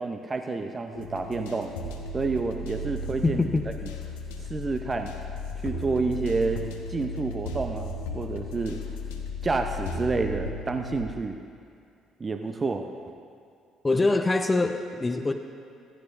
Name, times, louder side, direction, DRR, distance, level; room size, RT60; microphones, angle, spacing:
voice 1, 0.0-1.8 2.1-3.4 3.8-3.9 4.5-5.1 5.6-6.6 6.9-8.8 9.4-11.4 12.2-12.9, right 3 dB, 30° right, 5 dB, 0.7 m, -29 dB
sound 1, 0.9-11.1, left 1 dB, 80° left, 0.9 m, -35 dB
voice 2, 3.2-3.7 13.8-15.3, left 2 dB, 25° left, 6 dB, 0.7 m, -24 dB
15.0 x 15.0 x 2.6 m, 2.4 s
hypercardioid pair, 50°, 0 cm